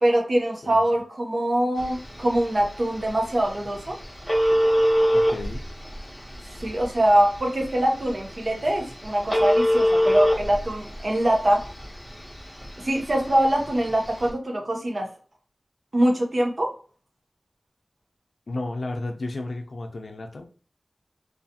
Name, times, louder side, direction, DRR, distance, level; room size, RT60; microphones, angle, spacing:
voice 1, 0.0-4.0 6.6-11.7 12.8-15.1 15.9-16.7, right 1 dB, 55° right, 2 dB, 0.6 m, -23 dB
Telephone, 1.8-14.3, equal, 5° left, 0.9 m, -26 dB
voice 2, 5.1-5.6 18.5-20.4, left 2 dB, 80° left, 5 dB, 0.4 m, -33 dB
2.4 x 2.3 x 2.7 m, 0.39 s
wide cardioid pair, 70°, 0 cm